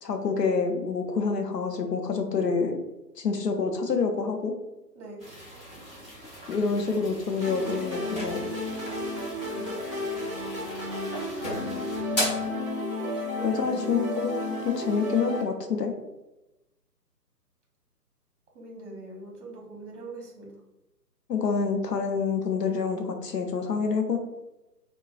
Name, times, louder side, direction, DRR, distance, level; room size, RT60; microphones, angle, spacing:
voice 1, 0.0-2.8 3.2-4.5 6.5-8.5 13.4-14.4 14.6-15.9 21.3-24.2, left 5 dB, 75° left, 4 dB, 0.7 m, -27 dB
sound 1, 5.2-12.0, equal, ahead, 1.3 m, -46 dB
sound 2, 7.4-15.4, left 2 dB, 20° right, 0.5 m, -32 dB
sound 3, 7.9-9.1 10.4-10.8 11.1-12.6, equal, 25° left, 0.8 m, -33 dB
voice 2, 8.8-9.8 13.0-13.9 18.5-20.5, right 2 dB, 45° right, -1 dB, 1.0 m, -43 dB
4.0 x 2.3 x 2.3 m, 0.97 s
figure-of-eight pair, 145°, 49 cm